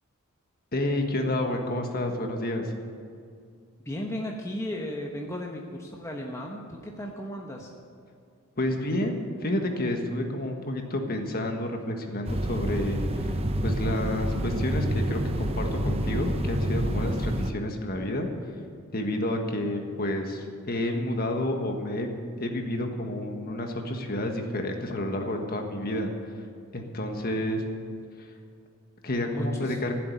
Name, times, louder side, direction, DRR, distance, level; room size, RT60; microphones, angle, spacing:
voice 1, 0.7-2.7 8.6-13.4 13.6-18.3 18.9-22.1 22.4-26.1 26.7-27.6 29.0-29.9, left 1 dB, 45° left, 3 dB, 1.5 m, -30 dB
voice 2, 3.8-7.7 29.3-29.8, left 1 dB, 15° left, -1 dB, 1.0 m, -35 dB
sound 1, 12.2-17.5, right 1 dB, 25° right, 0.7 m, -28 dB
15.0 x 7.8 x 9.3 m, 2.3 s
head